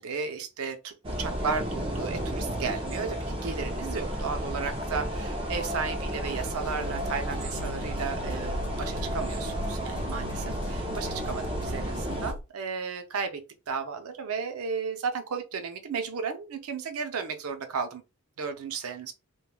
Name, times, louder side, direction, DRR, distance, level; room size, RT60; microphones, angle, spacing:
voice 1, 0.0-18.0 18.4-19.1, right 5 dB, 85° right, 0.5 m, -34 dB
sound 1, 1.0-12.3, equal, 25° right, 0.5 m, -32 dB
sound 2, 6.4-12.4, equal, 85° left, 0.6 m, -40 dB
3.0 x 2.2 x 2.2 m
head